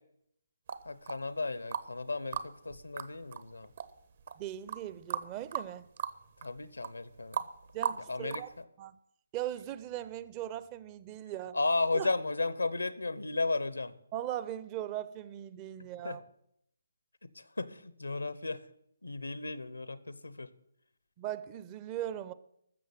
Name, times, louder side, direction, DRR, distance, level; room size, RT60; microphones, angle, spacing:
sound 1, 0.7-2.0 2.3-8.6, right 7 dB, 50° right, 0.9 m, -38 dB
voice 1, 0.8-3.7 6.4-7.5 7.9-8.6 11.5-13.9 16.0-16.2 17.2-18.6 19.0-20.5, left 3 dB, 85° left, 0.9 m, -34 dB
voice 2, 4.4-5.9 7.7-8.5 8.8-9.0 9.3-11.6 11.9-12.1 14.1-16.2 21.2-22.3, right 12 dB, 25° right, 0.6 m, -39 dB
13.5 x 6.9 x 7.9 m
figure-of-eight pair, 145°, 0 cm